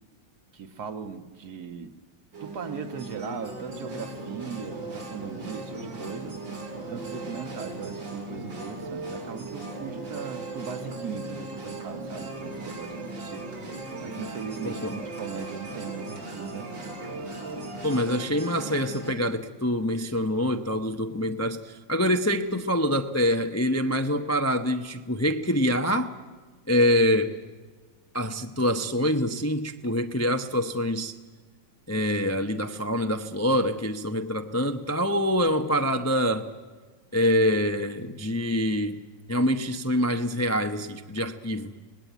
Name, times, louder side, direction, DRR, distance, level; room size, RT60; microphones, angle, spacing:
voice 1, 0.5-1.9 2.4-6.4 6.9-13.5 14.0-17.0, right 6 dB, 60° right, 8 dB, 1.8 m, -38 dB
sound 1, 2.3-19.1, right 2 dB, 80° right, 4.5 m, -37 dB
voice 2, 14.6-15.0 17.8-26.1 26.7-27.4 28.1-31.1 31.9-36.5 37.1-39.0 39.3-41.7, equal, 20° left, 7 dB, 0.4 m, -25 dB
26.0 x 20.0 x 9.3 m, 1.4 s
omnidirectional pair, 2.0 m